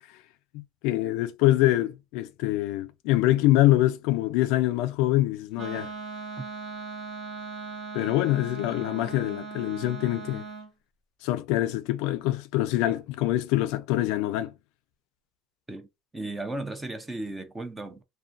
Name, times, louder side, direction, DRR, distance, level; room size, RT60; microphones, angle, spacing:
voice 1, 0.5-5.9 7.9-10.4 11.2-14.5, left 15 dB, 85° left, 0.4 m, -25 dB
Wind instrument woodwind instrument, 5.6-10.7, right 4 dB, 55° right, 1.4 m, -39 dB
voice 2, 16.1-18.0, right 2 dB, 10° right, 0.5 m, -35 dB
2.3 x 2.2 x 2.5 m
cardioid pair, 140°, 0 cm